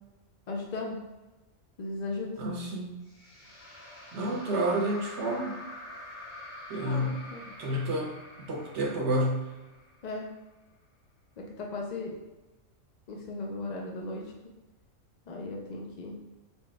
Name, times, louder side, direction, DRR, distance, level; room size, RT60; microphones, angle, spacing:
voice 1, 0.5-1.0 1.8-2.4 6.8-7.4 10.0-10.3 11.4-12.2 13.1-14.3 15.3-16.1, left 2 dB, 75° left, -1 dB, 0.4 m, -36 dB
voice 2, 2.4-3.0 4.1-5.6 6.7-7.2 7.6-9.4, right 1 dB, 65° right, 0 dB, 0.8 m, -30 dB
sound 1, 3.1-10.3, left 1 dB, 90° left, 1.9 m, -46 dB
4.4 x 2.2 x 3.2 m, 1.1 s
omnidirectional pair, 1.4 m